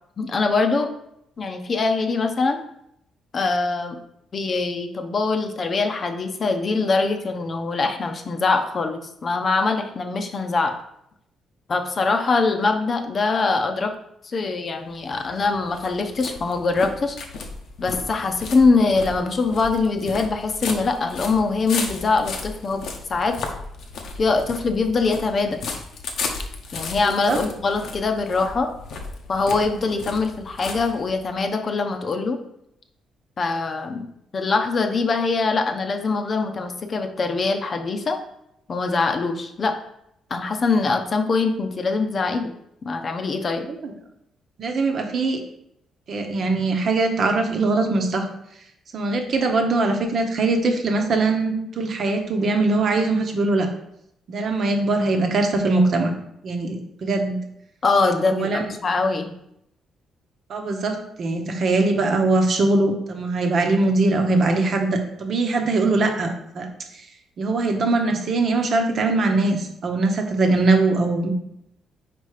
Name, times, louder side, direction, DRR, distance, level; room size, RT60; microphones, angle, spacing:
voice 1, 0.2-0.9 1.4-2.6 3.3-4.0 4.3-10.7 11.7-13.9 14.2-17.2 17.8-22.8 23.1-23.4 24.2-25.6 26.7-28.7 29.3-32.4 33.4-34.0 34.3-38.2 38.7-39.7 40.3-42.5 42.8-43.7 57.8-58.5 58.8-59.3, left 3 dB, 45° left, 5 dB, 0.7 m, -23 dB
sound 1, 14.9-31.4, left 4 dB, 70° left, 0.9 m, -35 dB
voice 2, 27.0-27.4 43.7-43.9 44.6-45.4 46.1-48.3 48.9-53.7 54.3-56.1 56.4-57.4 58.3-58.6 60.5-67.0 67.4-71.3, right 3 dB, 55° right, 4 dB, 1.0 m, -21 dB
4.5 x 4.2 x 4.8 m, 0.77 s
cardioid pair, 90°, 0 cm